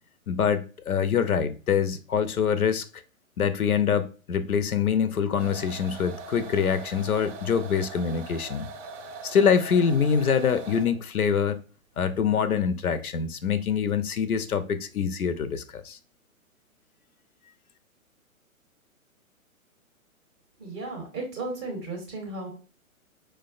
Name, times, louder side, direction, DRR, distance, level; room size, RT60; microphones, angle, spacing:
voice 1, 0.3-2.8 3.4-8.7 9.2-11.6 12.0-16.0, left 7 dB, 85° left, 0.5 m, -25 dB
sound 1, 5.4-11.1, right 4 dB, 60° right, 0.5 m, -42 dB
voice 2, 20.6-22.5, right 2 dB, 20° right, 0.6 m, -34 dB
4.6 x 2.1 x 2.4 m
figure-of-eight pair, 120°, 42 cm